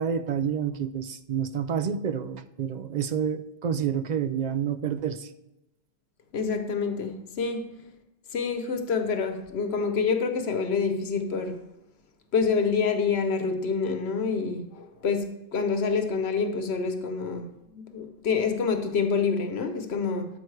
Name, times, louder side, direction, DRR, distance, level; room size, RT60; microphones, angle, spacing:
voice 1, 0.0-5.3, right 8 dB, 55° right, 0.6 m, -29 dB
voice 2, 6.3-7.6 8.3-11.6 12.3-20.3, left 5 dB, 85° left, 1.2 m, -27 dB
12.5 x 5.0 x 3.3 m
omnidirectional pair, 1.0 m